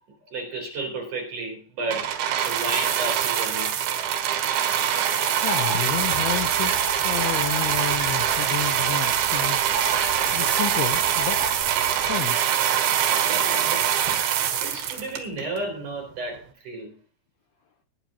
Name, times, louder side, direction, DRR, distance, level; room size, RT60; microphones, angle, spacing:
voice 1, 0.3-3.7 12.8-13.9 14.6-16.9, right 2 dB, 45° right, 2 dB, 5.0 m, -33 dB
sound 1, 1.9-15.6 16.3-16.4, right 10 dB, 80° right, 3.8 m, -24 dB
sound 2, 4.9-9.2 9.6-11.6, right 3 dB, 15° left, 7.9 m, -35 dB
voice 2, 5.4-6.8 7.0-9.7 10.3-11.5 11.8-12.4, left 9 dB, 75° left, 7 dB, 2.6 m, -31 dB
sound 3, 5.8-12.2, left 1 dB, 35° left, 6.1 m, -43 dB
20.5 x 10.0 x 2.9 m, 0.37 s
omnidirectional pair, 5.3 m